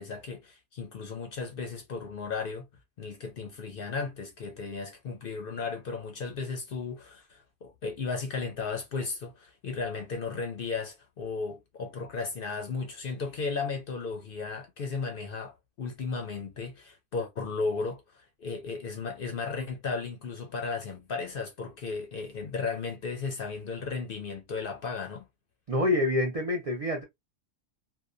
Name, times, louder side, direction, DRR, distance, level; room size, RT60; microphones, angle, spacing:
voice 1, 0.0-2.7 3.0-25.3, left 4 dB, 55° left, 0.6 m, -35 dB
voice 2, 25.7-27.0, left 2 dB, 75° right, 0.3 m, -26 dB
2.8 x 2.2 x 2.4 m
omnidirectional pair, 1.4 m